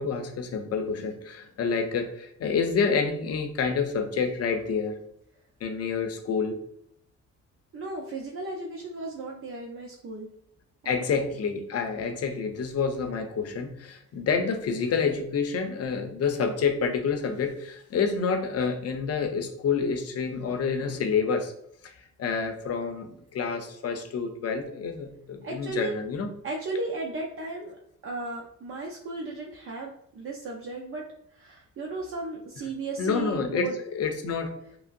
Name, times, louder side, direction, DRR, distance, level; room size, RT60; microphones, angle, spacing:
voice 1, 0.0-5.0 5.6-6.6 10.8-21.5 21.8-26.3 33.0-34.6, left 5 dB, 55° left, 5 dB, 0.7 m, -28 dB
voice 2, 7.7-10.3 10.8-11.0 25.4-26.0 26.4-27.8 28.0-31.1 31.3-33.8, right 2 dB, 45° right, -2 dB, 0.6 m, -35 dB
5.7 x 2.0 x 2.6 m, 0.71 s
cardioid pair, 90°, 30 cm